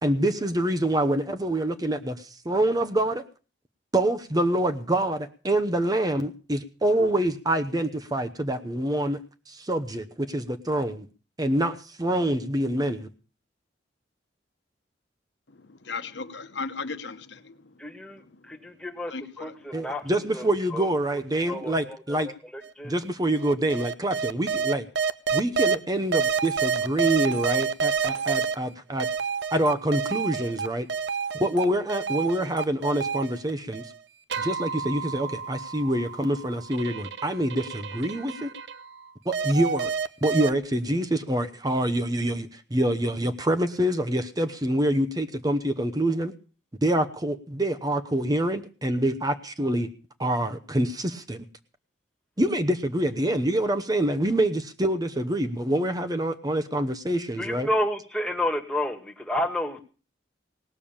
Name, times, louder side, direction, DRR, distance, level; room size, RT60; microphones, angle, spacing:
voice 1, 0.0-3.2 3.9-9.2 9.5-11.1 11.4-13.1 19.7-22.3 22.8-24.9 25.3-29.1 29.5-30.9 31.4-33.8 34.4-38.5 39.3-39.9 40.2-46.3 46.8-49.9 50.2-51.4 52.4-57.7, right 1 dB, 20° right, 8 dB, 0.9 m, -26 dB
voice 2, 15.5-19.7, left 4 dB, 75° left, 9 dB, 1.1 m, -38 dB
voice 3, 17.8-18.2 18.5-19.1 19.4-20.0 20.3-20.4 20.7-20.9 21.5-22.2 22.8-22.9 57.4-59.8, left 1 dB, 5° left, 3 dB, 1.7 m, -30 dB
sound 1, 22.6-22.7 23.4-25.8 26.1-28.5 29.0-31.6 31.9-33.9 34.3-39.0 39.3-40.5, right 6 dB, 75° right, 0.7 m, -29 dB
18.5 x 7.0 x 8.7 m, 0.38 s
head